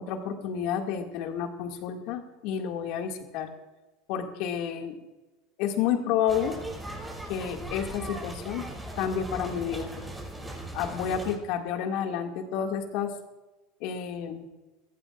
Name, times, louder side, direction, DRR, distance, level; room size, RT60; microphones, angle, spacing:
voice 1, 0.0-3.5 4.1-5.0 5.6-6.6 7.3-8.6 9.0-9.9 10.7-13.1 13.8-14.5, left 8 dB, 65° left, 4 dB, 2.1 m, -30 dB
sound 1, 6.3-11.4, right 1 dB, 10° right, 5.6 m, -38 dB
23.5 x 15.0 x 2.5 m, 1.1 s
hypercardioid pair, 95°, 0 cm